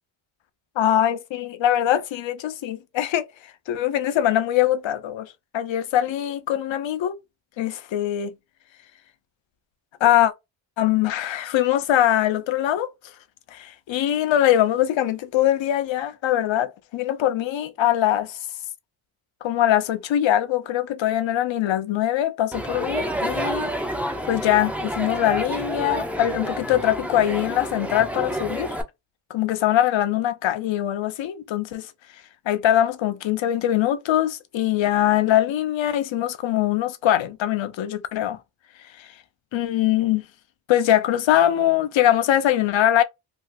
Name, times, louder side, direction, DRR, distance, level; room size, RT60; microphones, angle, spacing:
voice 1, 0.8-3.2 3.7-7.2 7.6-8.3 10.0-10.3 10.8-12.9 13.5-18.4 19.4-23.7 24.2-28.8 29.3-31.9 32.5-38.4 39.0-39.1 39.5-40.2 40.7-43.0, left 12 dB, 70° left, 0.6 m, -22 dB
Crowd, 22.5-28.8, equal, 5° right, 0.4 m, -29 dB
3.4 x 2.3 x 2.5 m
wide cardioid pair, 130°, 48 cm